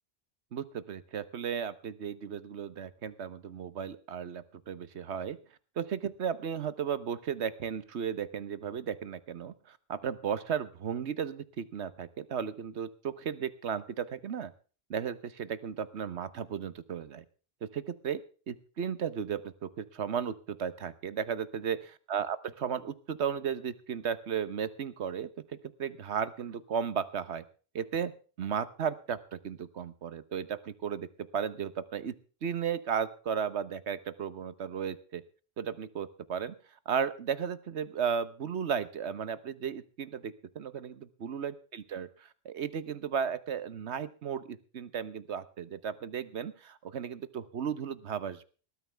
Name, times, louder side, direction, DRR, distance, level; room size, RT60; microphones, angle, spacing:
voice 1, 0.5-5.4 5.8-14.5 14.9-17.2 17.6-18.2 18.5-25.3 25.8-27.4 27.7-28.1 28.4-31.1 31.3-32.1 32.4-35.2 35.6-36.6 36.9-42.1 42.4-48.5, right 7 dB, 75° right, 14 dB, 1.3 m, -35 dB
19.5 x 13.0 x 3.4 m, 0.38 s
omnidirectional pair, 1.1 m